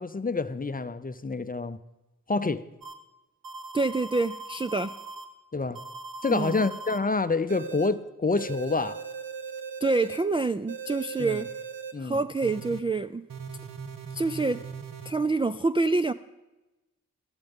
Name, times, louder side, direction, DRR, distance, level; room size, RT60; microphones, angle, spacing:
voice 1, 0.0-1.8 2.3-2.6 5.5-5.8 6.2-9.0 11.2-11.4 11.9-12.2, left 3 dB, 25° left, 0.6 m, -28 dB
sound 1, 2.8-2.9 3.4-5.3 5.8-7.0 7.5-7.9 8.4-10.2 10.7-11.9 12.4-12.8 13.3-15.1, right 5 dB, 70° right, 1.1 m, -39 dB
voice 2, 3.7-4.9 6.3-6.5 9.8-11.5 12.0-13.3 14.1-14.6 15.1-16.1, right 3 dB, 15° right, 0.3 m, -26 dB
13.5 x 13.0 x 3.7 m
cardioid pair, 60°, 35 cm